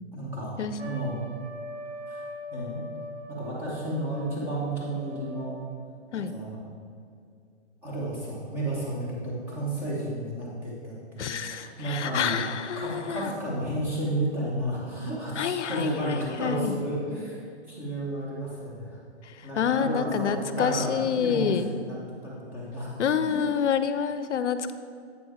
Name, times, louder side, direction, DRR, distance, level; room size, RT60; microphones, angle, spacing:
voice 1, 0.1-1.2 2.1-2.8 3.3-5.6 6.1-6.6 7.8-19.0 19.4-22.0 22.2-23.5, right 1 dB, 5° right, -7 dB, 1.0 m, -32 dB
Trumpet, 0.8-5.8, right 1 dB, 85° right, 1.1 m, -41 dB
voice 2, 11.2-13.3 15.4-16.8 19.6-21.7 23.0-24.7, left 7 dB, 85° left, 11 dB, 0.6 m, -27 dB
8.4 x 4.6 x 4.3 m, 2.3 s
hypercardioid pair, 160°, 34 cm